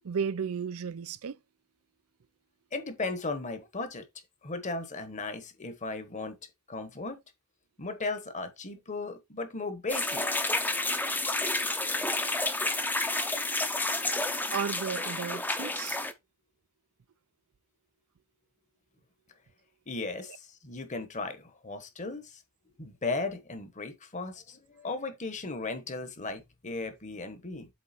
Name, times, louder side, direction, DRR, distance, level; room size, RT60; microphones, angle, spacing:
voice 1, 0.0-1.4 14.5-16.0, right 6 dB, 85° right, 0.5 m, -33 dB
voice 2, 2.7-4.0 4.4-6.4 6.7-7.2 7.8-10.3 19.9-22.4 22.8-27.7, left 3 dB, 35° left, 1.2 m, -36 dB
sound 1, 9.9-16.1, left 2 dB, 10° left, 0.6 m, -30 dB
7.8 x 3.6 x 4.2 m
head